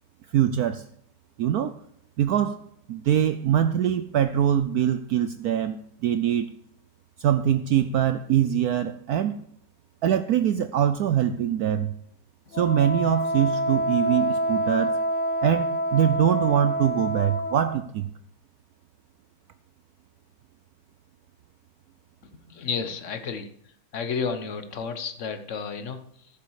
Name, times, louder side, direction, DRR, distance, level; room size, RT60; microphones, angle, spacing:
voice 1, 0.3-0.8 1.4-1.7 2.2-2.6 2.9-6.5 7.2-9.4 10.0-11.9 12.5-15.0 15.4-18.1, right 10 dB, 80° right, 12 dB, 0.8 m, -23 dB
Wind instrument woodwind instrument, 12.5-17.8, right 1 dB, 70° left, 0.7 m, -27 dB
voice 2, 22.5-23.5 23.9-26.3, left 6 dB, 45° left, 9 dB, 1.1 m, -31 dB
14.0 x 7.3 x 4.7 m, 0.69 s
omnidirectional pair, 2.2 m